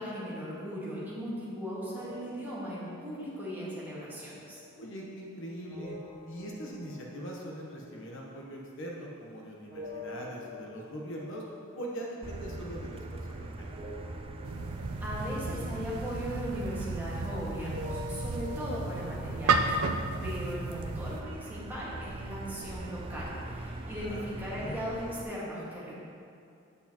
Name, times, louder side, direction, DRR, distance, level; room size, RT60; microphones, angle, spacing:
voice 1, 0.0-4.6 15.0-19.8 20.2-25.9, equal, 10° right, -8 dB, 1.7 m, -38 dB
sound 1, 2.0-9.3 9.7-17.3 17.7-21.7, left 2 dB, 50° right, 1.6 m, -49 dB
voice 2, 4.7-6.0 6.3-11.4 11.7-13.7 23.8-24.8, equal, 60° left, -2 dB, 1.0 m, -41 dB
Motor vehicle (road), 12.2-25.2, right 2 dB, 25° right, 0.3 m, -42 dB
sound 2, 14.4-21.2, right 3 dB, 90° right, 0.5 m, -33 dB
8.1 x 8.1 x 2.9 m, 2.5 s
head